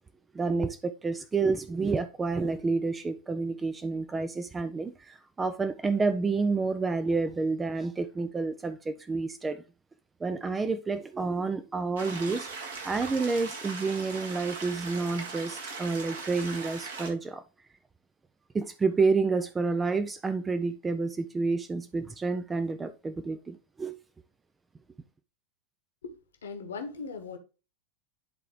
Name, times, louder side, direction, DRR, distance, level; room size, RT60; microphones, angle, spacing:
voice 1, 0.3-9.6 10.2-17.4 18.5-24.0, right 4 dB, 15° right, 0.4 m, -29 dB
sound 1, 12.0-17.1, right 4 dB, 60° right, 1.8 m, -39 dB
voice 2, 26.0-27.4, left 4 dB, 65° left, 1.2 m, -39 dB
10.5 x 3.8 x 3.1 m
figure-of-eight pair, 90°, 0 cm